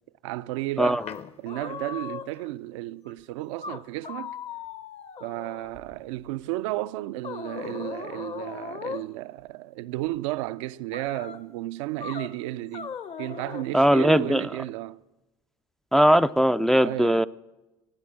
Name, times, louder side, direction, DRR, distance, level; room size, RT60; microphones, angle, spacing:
voice 1, 0.2-1.0 1.4-4.4 5.2-15.0 16.8-17.3, right 17 dB, 70° right, 0.4 m, -33 dB
sound 1, 1.0-2.5 3.1-3.2 3.6-6.0 7.2-9.1 10.9-11.4 12.0-12.3 12.7-13.7, left 6 dB, 40° left, 0.9 m, -38 dB
voice 2, 13.7-14.4 15.9-17.3, equal, 5° left, 0.4 m, -19 dB
18.5 x 8.5 x 6.3 m
hypercardioid pair, 70°, 17 cm